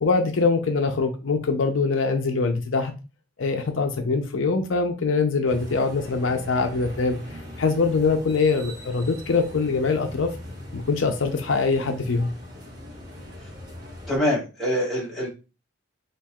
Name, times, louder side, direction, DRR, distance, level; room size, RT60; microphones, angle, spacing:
voice 1, 0.0-2.9 3.4-7.2 7.6-10.3 10.7-12.3, left 4 dB, 70° left, 0.5 m, -23 dB
sound 1, 5.5-14.2, left 1 dB, 45° right, 1.3 m, -40 dB
voice 2, 14.1-15.3, left 1 dB, ahead, 1.5 m, -24 dB
4.4 x 2.9 x 2.3 m
head